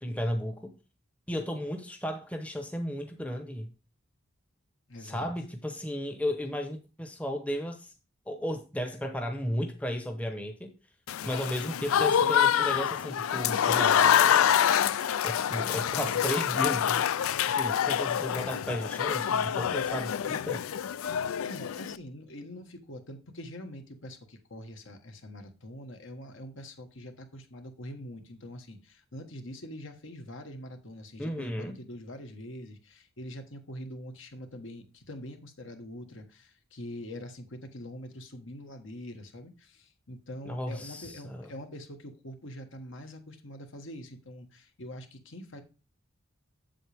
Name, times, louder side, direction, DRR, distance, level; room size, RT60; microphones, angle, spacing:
voice 1, 0.0-0.7 1.3-3.7 5.0-7.9 8.3-10.7 11.2-14.5 15.2-17.0 17.5-20.6 31.2-31.8 40.4-41.5, equal, 5° left, 0.8 m, -34 dB
voice 2, 4.9-5.3 21.4-45.6, left 1 dB, 65° left, 1.4 m, -44 dB
Applause / Crowd, 11.1-22.0, left 9 dB, 85° left, 0.4 m, -26 dB
7.7 x 7.5 x 3.4 m
head